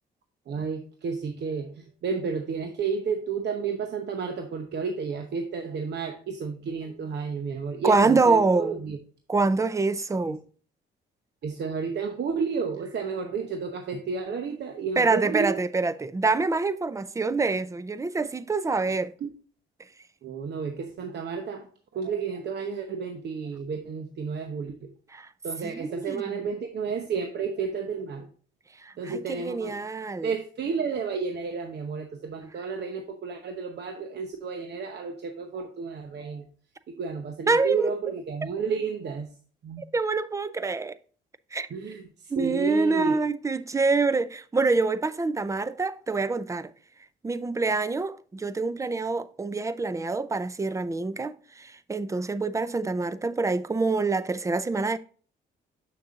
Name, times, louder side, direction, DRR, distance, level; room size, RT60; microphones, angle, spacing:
voice 1, 0.5-9.0 10.2-10.3 11.4-15.6 19.2-19.3 20.2-24.9 25.4-28.3 29.0-29.8 30.2-36.5 37.0-39.4 39.6-39.8 41.7-43.2, right 5 dB, 60° right, 0.9 m, -31 dB
voice 2, 7.8-8.8 9.3-10.4 15.0-19.1 25.1-25.3 25.6-26.3 28.8-30.3 37.5-37.9 39.9-41.0 41.5-41.7 42.3-46.7 47.2-55.0, right 3 dB, 15° right, 0.5 m, -26 dB
6.9 x 6.6 x 2.5 m
cardioid pair, 90°, 20 cm